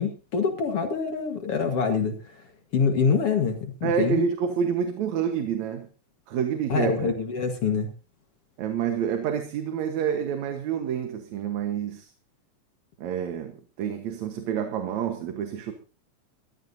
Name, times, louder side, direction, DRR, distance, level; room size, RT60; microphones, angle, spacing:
voice 1, 0.0-2.2 2.7-4.2 6.7-7.9, left 5 dB, 55° left, 2.4 m, -25 dB
voice 2, 3.8-5.9 6.3-7.1 8.6-12.1 13.0-15.7, right 7 dB, 75° right, 2.6 m, -28 dB
22.5 x 14.5 x 2.7 m
omnidirectional pair, 3.3 m